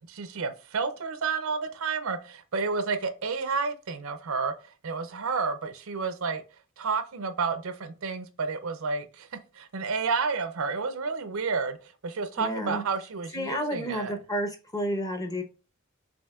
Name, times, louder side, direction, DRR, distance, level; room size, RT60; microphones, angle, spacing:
voice 1, 0.1-4.5 4.8-6.4 6.8-9.3 9.5-11.8 12.0-14.1, right 4 dB, 70° right, 0.6 m, -30 dB
voice 2, 12.4-12.8 13.3-15.4, equal, 15° left, 0.8 m, -31 dB
6.2 x 3.0 x 2.3 m
head